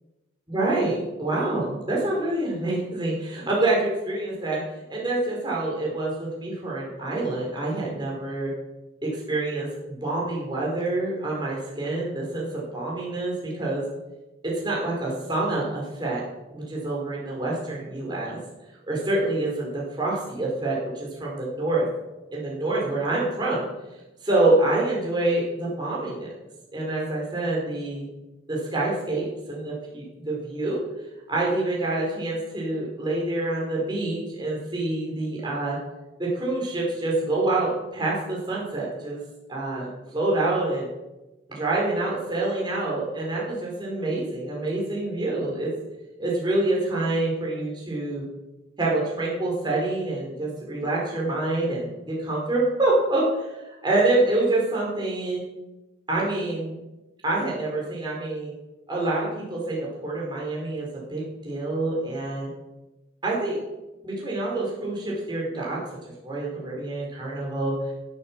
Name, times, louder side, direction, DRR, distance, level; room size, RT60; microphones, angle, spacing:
voice 1, 0.5-4.6 4.9-8.5 9.0-13.8 14.4-16.2 16.5-18.4 18.9-21.9 22.3-23.6 24.2-26.3 26.7-28.0 28.5-30.8 31.3-35.8 36.2-39.2 39.5-40.9 41.5-45.7 46.2-48.2 48.8-55.4 56.1-56.8 57.2-58.5 58.9-62.5 63.2-63.6 64.0-65.8 66.2-67.9, right 2 dB, 20° right, -4 dB, 4.5 m, -26 dB
15.5 x 7.9 x 7.4 m, 1.0 s
head